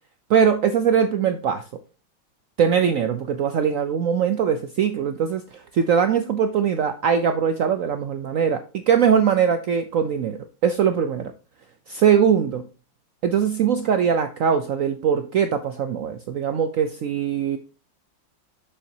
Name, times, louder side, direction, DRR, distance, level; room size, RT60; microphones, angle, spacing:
voice 1, 0.3-1.6 2.6-11.3 11.9-12.7 13.2-17.6, right 7 dB, 80° right, 9 dB, 0.7 m, -21 dB
7.2 x 7.0 x 2.7 m, 0.34 s
omnidirectional pair, 2.1 m